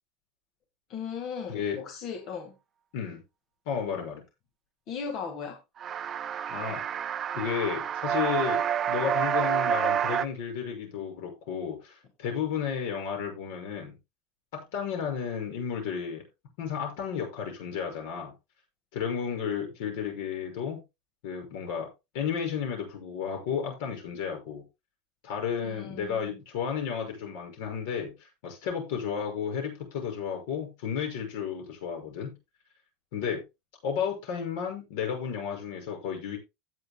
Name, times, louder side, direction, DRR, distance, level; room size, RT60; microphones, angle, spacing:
voice 1, 0.9-2.5 4.9-5.6 25.6-26.4, left 6 dB, 35° left, 1.6 m, -37 dB
voice 2, 3.7-4.2 6.5-6.8 7.3-13.9 14.5-16.2 16.6-18.3 18.9-20.8 21.2-21.9 22.1-24.6 25.2-32.3 33.1-33.4 33.8-36.4, left 7 dB, 60° left, 6.0 m, -32 dB
sound 1, 5.8-10.2, right 9 dB, 20° right, 0.5 m, -28 dB
17.0 x 7.8 x 2.2 m
cardioid pair, 180°, 0 cm